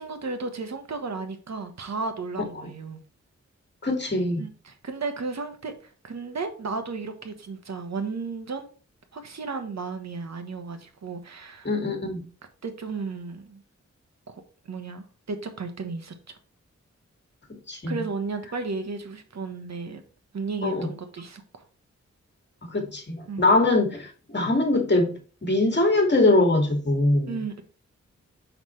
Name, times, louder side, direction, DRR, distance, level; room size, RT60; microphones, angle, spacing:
voice 1, 0.0-3.0 4.4-8.7 9.1-11.7 12.6-13.6 14.3-16.1 17.9-20.0 20.3-21.4 23.3-23.5 27.3-27.6, right 4 dB, 65° right, 7 dB, 1.3 m, -34 dB
voice 2, 3.8-4.4 11.6-12.2 17.7-18.0 20.6-20.9 22.6-25.1 25.4-27.4, left 2 dB, 35° left, 2 dB, 2.2 m, -22 dB
5.8 x 5.8 x 3.2 m, 0.38 s
cardioid pair, 65°, 29 cm